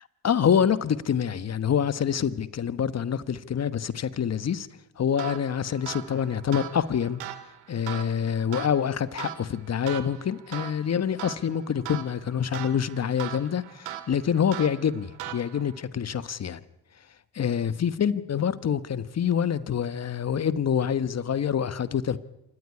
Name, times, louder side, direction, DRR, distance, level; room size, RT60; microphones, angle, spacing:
voice 1, 0.2-4.7 5.0-7.2 7.7-16.6 17.3-22.2, left 8 dB, 40° left, 1.3 m, -26 dB
sound 1, 5.2-15.8, right 12 dB, 80° right, 2.4 m, -40 dB
26.5 x 15.0 x 9.7 m
supercardioid pair, 75°, 39 cm